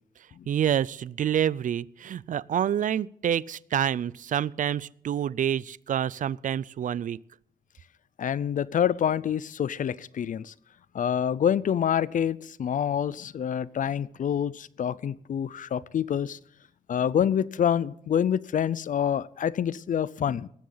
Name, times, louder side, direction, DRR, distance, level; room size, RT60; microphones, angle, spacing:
voice 1, 0.5-7.2, right 9 dB, 60° right, 0.5 m, -27 dB
voice 2, 8.2-10.5 10.9-16.4 16.9-20.5, left 9 dB, 60° left, 0.6 m, -27 dB
18.5 x 14.0 x 4.0 m
cardioid pair, 105°, 15 cm